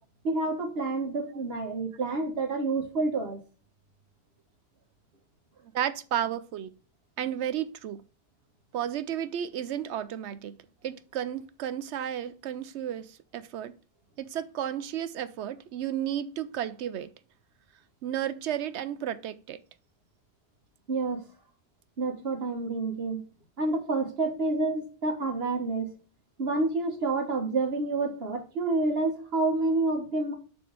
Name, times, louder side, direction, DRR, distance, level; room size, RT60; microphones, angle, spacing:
voice 1, 0.2-3.4 20.9-21.2 22.0-23.2 23.6-25.9 26.4-30.4, right 3 dB, 60° right, 1.6 m, -28 dB
voice 2, 5.7-6.7 7.2-8.0 8.7-10.6 10.8-13.7 14.2-17.1 18.0-19.6, right 10 dB, 75° right, 0.9 m, -33 dB
6.9 x 3.7 x 5.2 m
omnidirectional pair, 1.2 m